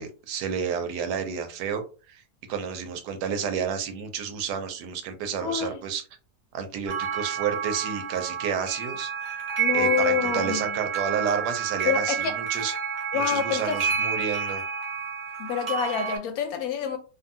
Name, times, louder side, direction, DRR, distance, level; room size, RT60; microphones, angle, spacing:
voice 1, 0.0-2.2 2.5-6.0 6.5-9.4 9.7-12.7 13.1-14.6, right 7 dB, 85° right, 1.2 m, -30 dB
voice 2, 5.4-5.8 9.6-10.6 11.8-12.4 13.1-13.8 15.4-17.0, left 8 dB, 70° left, 1.0 m, -27 dB
sound 1, 6.9-16.2, right 7 dB, 45° right, 0.7 m, -29 dB
2.6 x 2.6 x 2.6 m
omnidirectional pair, 1.8 m